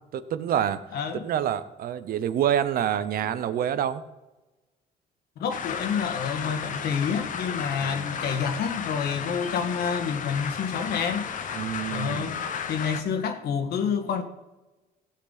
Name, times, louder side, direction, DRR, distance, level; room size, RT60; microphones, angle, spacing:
voice 1, 0.1-0.8 1.2-4.0 7.8-8.2 11.5-12.4, right 10 dB, 60° right, 0.9 m, -27 dB
voice 2, 0.9-1.3 5.4-11.3 11.9-12.4 12.7-14.2, left 6 dB, 70° left, 1.8 m, -28 dB
sound 1, 5.5-13.0, left 7 dB, 50° left, 1.0 m, -34 dB
16.0 x 8.4 x 4.1 m
cardioid pair, 110°, 17 cm